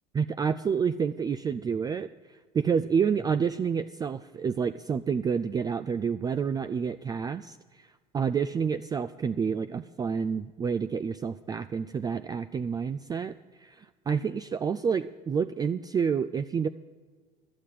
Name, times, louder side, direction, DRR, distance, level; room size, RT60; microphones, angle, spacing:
voice 1, 0.1-16.7, right 6 dB, 20° right, 11 dB, 0.3 m, -29 dB
11.5 x 6.8 x 9.1 m, 1.4 s
hypercardioid pair, 70°, 20 cm